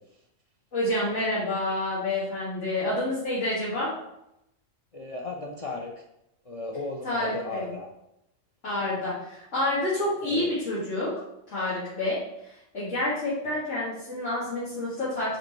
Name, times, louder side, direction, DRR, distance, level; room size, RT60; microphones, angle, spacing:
voice 1, 0.7-3.9 7.0-7.7 8.6-11.1 11.5-15.4, left 1 dB, 85° left, -10 dB, 2.3 m, -28 dB
voice 2, 4.9-5.9 6.5-7.9 10.2-10.5, left 2 dB, 40° left, 0 dB, 0.5 m, -35 dB
5.2 x 4.2 x 4.5 m, 0.84 s
omnidirectional pair, 1.3 m